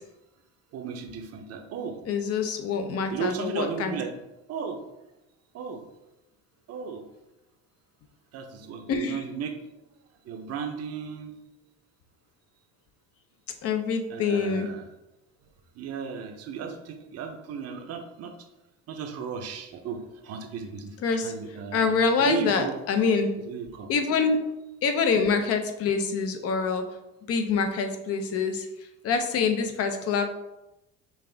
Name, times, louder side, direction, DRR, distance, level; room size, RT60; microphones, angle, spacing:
voice 1, 0.7-2.0 3.1-4.1 4.5-4.8 5.5-5.8 6.7-7.1 8.3-9.6 10.3-11.3 14.1-14.9 15.8-18.3 18.9-21.0 21.2-22.8 23.4-23.9, right 6 dB, 50° right, 6 dB, 0.7 m, -35 dB
voice 2, 2.1-4.0 8.9-9.2 13.6-14.7 21.0-21.3 21.7-23.3 23.9-24.4 24.8-26.8 27.3-28.7 29.0-30.4, left 5 dB, 50° left, 7 dB, 0.6 m, -25 dB
5.5 x 2.5 x 3.3 m, 0.94 s
cardioid pair, 120°, 32 cm